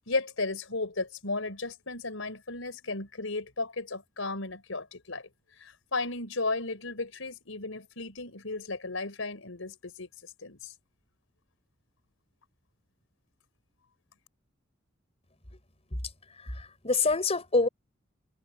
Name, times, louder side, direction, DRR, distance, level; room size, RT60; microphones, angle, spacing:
voice 1, 0.1-5.3 5.6-10.7, left 3 dB, 85° left, 4.1 m, -34 dB
voice 2, 16.4-17.7, left 3 dB, 30° left, 4.1 m, -26 dB
head